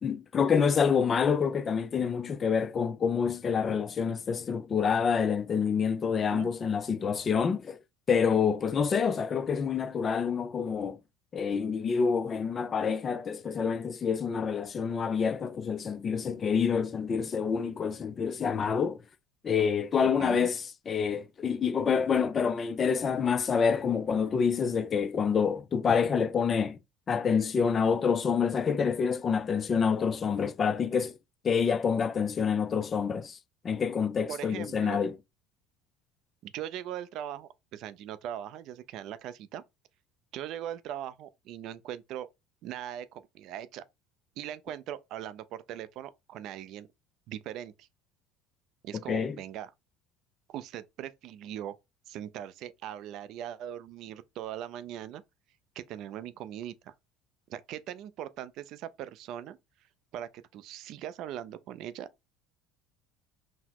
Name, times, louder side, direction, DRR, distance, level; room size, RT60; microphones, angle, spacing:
voice 1, 0.0-7.8 8.1-11.0 11.3-19.0 19.4-26.8 27.1-31.1 31.4-33.4 33.6-35.1 49.1-49.4, left 6 dB, 35° left, 0.4 m, -27 dB
voice 2, 6.2-6.5 20.2-20.5 34.3-35.0 36.4-39.6 40.3-42.3 42.6-43.8 44.4-46.9 47.3-47.9 48.8-49.7 50.5-51.8 52.1-55.2 55.8-56.9 57.5-59.6 60.1-62.1, right 11 dB, 60° right, 0.3 m, -40 dB
4.0 x 2.0 x 2.8 m
supercardioid pair, 95°, 0 cm